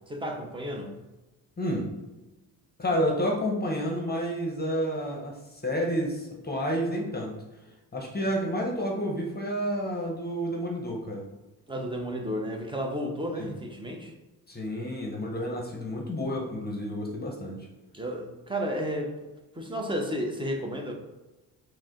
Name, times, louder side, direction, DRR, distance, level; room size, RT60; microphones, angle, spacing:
voice 1, 0.1-0.9 11.7-14.1 17.9-19.1 19.6-20.9, equal, 10° right, 1 dB, 0.8 m, -32 dB
voice 2, 1.6-1.9 2.8-7.3 7.9-11.2 13.3-13.5 14.5-17.7, equal, 20° left, 0 dB, 0.9 m, -30 dB
4.7 x 2.2 x 3.7 m, 1.1 s
cardioid pair, 75°, 44 cm